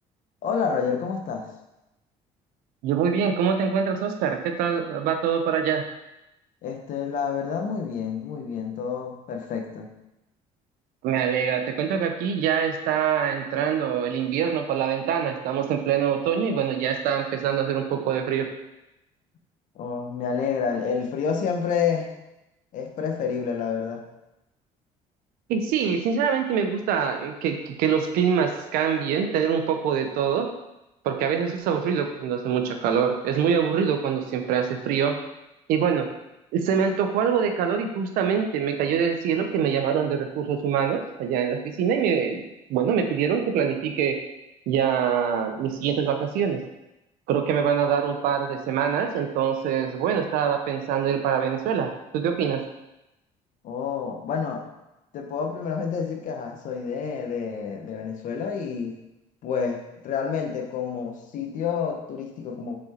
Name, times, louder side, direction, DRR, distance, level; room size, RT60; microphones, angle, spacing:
voice 1, 0.4-1.5 6.6-9.9 19.7-22.1 22.7-24.0 53.6-54.6 55.1-59.0 59.4-62.8, left 6 dB, 65° left, 3 dB, 1.1 m, -29 dB
voice 2, 2.8-5.9 11.0-18.5 25.5-30.5 31.0-35.2 35.7-36.1 36.5-44.2 44.7-46.6 47.3-52.7, right 7 dB, 80° right, 6 dB, 0.9 m, -24 dB
6.4 x 4.4 x 4.4 m, 0.93 s
cardioid pair, 100°, 15 cm